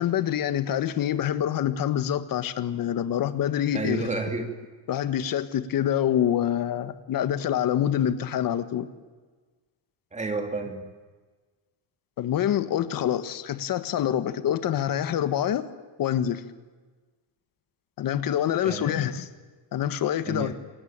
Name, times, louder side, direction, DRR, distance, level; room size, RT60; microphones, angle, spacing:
voice 1, 0.0-4.1 4.9-8.9 12.2-15.7 16.0-16.4 18.0-19.3 19.7-20.5, left 10 dB, 45° left, 12 dB, 1.6 m, -26 dB
voice 2, 3.7-4.5 10.1-10.9 18.6-19.0 20.3-20.5, right 3 dB, 15° right, 5 dB, 2.8 m, -31 dB
28.0 x 23.5 x 8.9 m, 1.4 s
cardioid pair, 180°, 47 cm